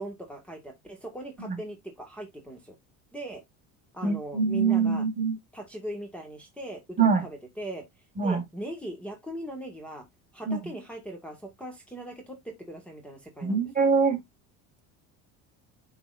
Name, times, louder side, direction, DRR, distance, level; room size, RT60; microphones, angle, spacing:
voice 1, 0.0-2.8 3.1-3.4 3.9-5.0 5.5-7.9 8.2-10.1 10.3-13.6, right 1 dB, 5° left, 1.7 m, -39 dB
voice 2, 4.0-5.4 7.0-7.3 8.2-8.4 10.5-10.6 13.4-14.2, right 5 dB, 25° right, 2.1 m, -24 dB
11.0 x 4.1 x 2.5 m
cardioid pair, 140°, 34 cm